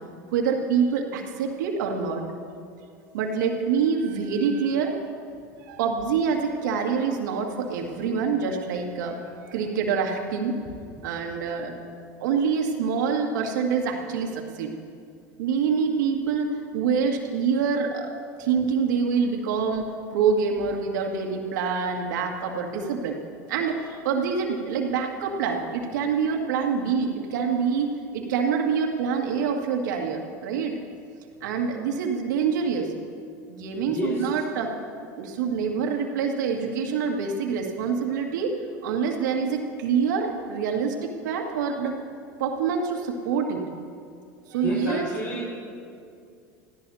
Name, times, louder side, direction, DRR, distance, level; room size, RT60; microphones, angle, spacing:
voice 1, 0.3-2.2 3.1-5.0 5.6-10.6 11.0-11.7 12.2-14.7 15.4-18.1 18.4-23.2 23.5-30.7 31.4-32.9 33.5-34.8 35.2-38.6 38.8-42.0 42.4-43.6 44.5-45.1, right 6 dB, 80° right, 1 dB, 2.1 m, -26 dB
voice 2, 33.9-34.3 44.6-45.6, left 1 dB, 30° left, -7 dB, 4.6 m, -30 dB
26.0 x 16.0 x 2.8 m, 2.3 s
hypercardioid pair, 95°, 10 cm